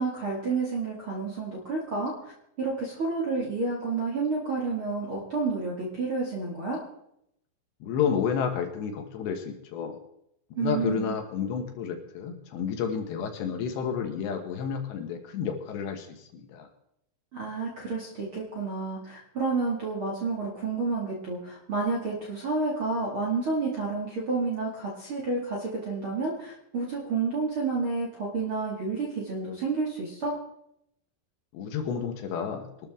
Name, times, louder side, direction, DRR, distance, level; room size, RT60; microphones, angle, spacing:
voice 1, 0.0-2.1 2.6-6.8 10.6-11.2 17.3-30.4, right 4 dB, 40° right, -4 dB, 2.1 m, -30 dB
voice 2, 7.8-10.0 10.5-16.7 31.5-32.7, left 7 dB, 70° left, 4 dB, 3.2 m, -31 dB
23.0 x 13.0 x 3.7 m, 0.78 s
omnidirectional pair, 5.5 m